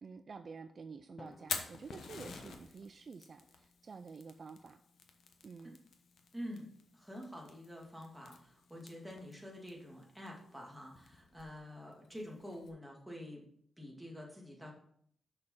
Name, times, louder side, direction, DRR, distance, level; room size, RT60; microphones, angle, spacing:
voice 1, 0.0-4.8 5.4-5.8, right 5 dB, 45° right, 10 dB, 0.4 m, -50 dB
Drum, 1.2-3.3, left 3 dB, 35° left, 0.7 m, -60 dB
Fire, 1.3-12.7, left 5 dB, 80° left, 1.2 m, -49 dB
voice 2, 6.3-6.7 6.9-13.4 13.8-14.7, equal, 5° right, -1 dB, 2.3 m, -47 dB
6.7 x 6.4 x 5.5 m, 0.65 s
wide cardioid pair, 120°, 0 cm